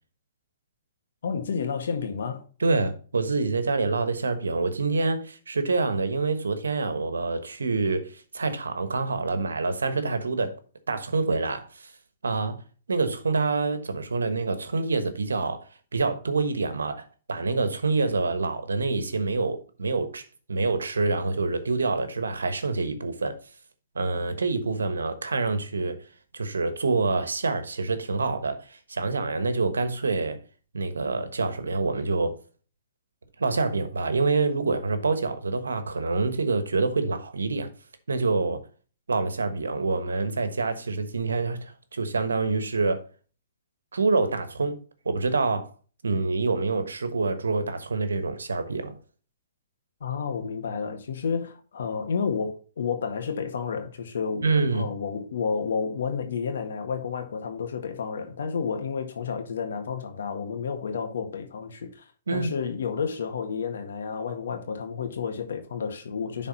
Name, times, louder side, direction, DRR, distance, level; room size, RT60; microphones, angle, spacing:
voice 1, 1.2-2.4 50.0-54.4 54.7-66.5, left 6 dB, 75° left, 1.7 m, -31 dB
voice 2, 2.6-10.5 10.9-11.9 12.2-12.6 12.9-17.0 17.3-20.2 20.5-23.4 23.9-26.0 26.3-30.4 30.7-32.4 33.4-37.7 38.1-38.6 39.1-43.0 43.9-45.7 46.0-49.0 54.4-55.0 62.3-62.5, right 3 dB, 90° right, 1.2 m, -26 dB
10.5 x 4.1 x 4.1 m
hypercardioid pair, 130°, 0 cm